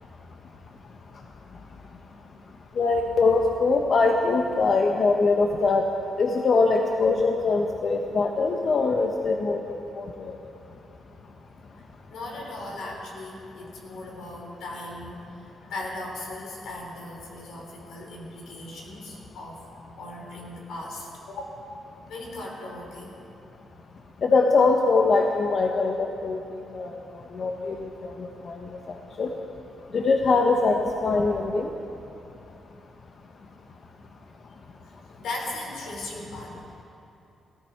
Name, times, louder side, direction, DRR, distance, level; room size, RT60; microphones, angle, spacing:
voice 1, 2.8-5.9 6.2-10.1 24.2-26.4 26.7-26.9 27.3-27.9 28.4-28.5 29.2-29.3 29.9-31.7, left 3 dB, 50° left, 3 dB, 0.9 m, -22 dB
voice 2, 11.8-15.2 15.6-19.6 20.0-21.4 22.1-23.2 35.2-36.6, left 2 dB, 85° left, -1 dB, 3.3 m, -38 dB
18.0 x 13.5 x 4.6 m, 2.9 s
cardioid pair, 100°, 0 cm